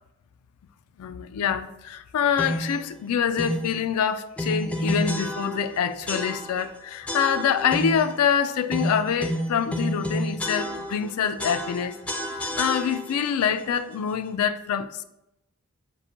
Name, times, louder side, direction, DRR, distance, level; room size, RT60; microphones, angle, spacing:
voice 1, 1.0-12.0 12.6-15.0, left 7 dB, 85° left, 0.3 m, -25 dB
sound 1, 2.4-2.8 3.4-3.7 4.4-5.7 6.1-6.7 7.1-8.1 8.7-11.1 11.4-13.3, equal, 5° left, 0.4 m, -30 dB
6.7 x 2.5 x 2.8 m
head